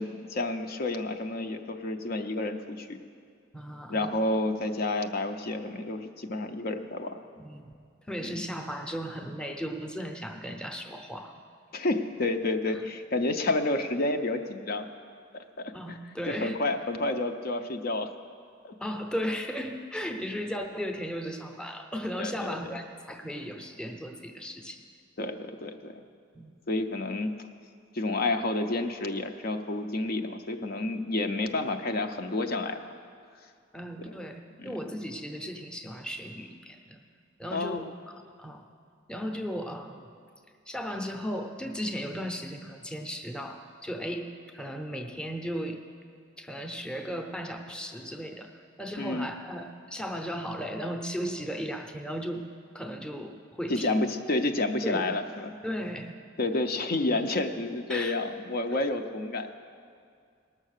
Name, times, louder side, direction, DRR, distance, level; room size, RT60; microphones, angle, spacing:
voice 1, 0.0-3.0 3.9-7.2 8.2-8.5 11.7-14.8 15.3-16.0 16.3-18.1 18.6-18.7 22.2-22.7 25.2-26.0 26.7-27.3 27.9-32.9 34.6-34.8 37.5-37.9 49.0-49.3 53.7-55.5 56.4-59.6, left 2 dB, 50° left, 6 dB, 0.6 m, -30 dB
voice 2, 3.5-4.1 7.4-7.7 8.1-11.4 12.7-12.9 15.7-16.6 18.8-24.8 26.3-26.5 33.7-37.0 37.4-38.6 39.1-40.1 40.7-45.8 46.4-48.5 48.8-52.5 52.7-53.9 54.8-55.1 55.6-56.1 57.9-58.2, equal, 5° left, 5 dB, 0.7 m, -36 dB
18.5 x 6.5 x 6.5 m, 2.2 s
head